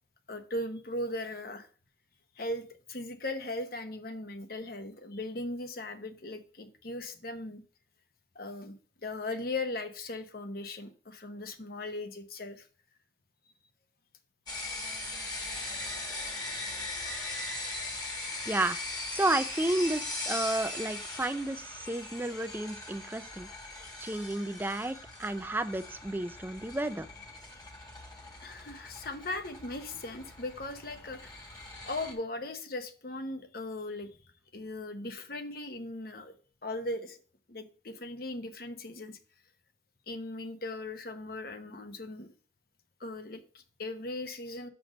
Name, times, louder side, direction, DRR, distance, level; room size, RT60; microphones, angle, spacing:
voice 1, 0.3-1.7 2.4-7.6 8.3-8.7 9.0-12.7 23.8-23.9 28.4-31.4 31.8-34.1 34.5-36.3 36.6-37.2 37.5-39.2 40.1-42.3 43.0-44.7, left 2 dB, 50° left, 0.9 m, -38 dB
construction work, 14.5-32.1, left 2 dB, 20° left, 1.5 m, -40 dB
voice 2, 18.5-18.8 19.1-23.5 24.0-27.1, right 2 dB, 10° right, 0.4 m, -32 dB
6.3 x 6.0 x 5.1 m
head